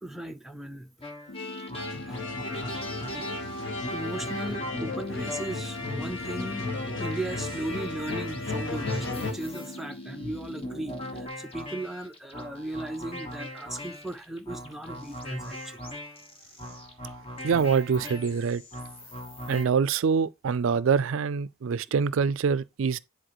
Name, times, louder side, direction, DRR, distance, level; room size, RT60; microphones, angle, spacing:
voice 1, 0.0-0.9 1.9-2.2 3.9-16.0 16.7-16.8, right 1 dB, ahead, 0.4 m, -37 dB
sound 1, 1.0-19.7, left 1 dB, 25° left, 1.3 m, -40 dB
sound 2, 1.3-11.3, left 1 dB, 85° left, 0.7 m, -42 dB
sound 3, 1.7-9.3, left 3 dB, 60° left, 1.3 m, -35 dB
voice 2, 17.4-18.6 19.5-23.0, right 6 dB, 65° right, 0.4 m, -25 dB
10.0 x 4.2 x 3.0 m
head